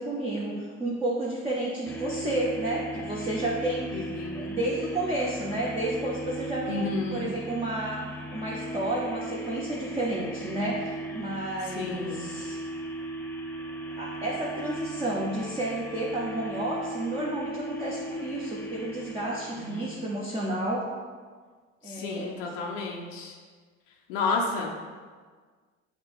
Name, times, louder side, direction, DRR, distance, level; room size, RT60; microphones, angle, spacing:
voice 1, 0.0-8.0 8.3-12.6 13.9-20.9 21.8-22.3, right 1 dB, 15° right, -4 dB, 0.7 m, -31 dB
sound 1, 1.9-20.1, right 1 dB, 5° left, 0.3 m, -37 dB
voice 2, 3.9-4.4 6.7-7.3 11.8-12.3 19.6-19.8 21.9-23.4 24.1-24.7, left 3 dB, 80° left, 0 dB, 0.6 m, -31 dB
5.8 x 2.3 x 3.5 m, 1.5 s
hypercardioid pair, 65°, 37 cm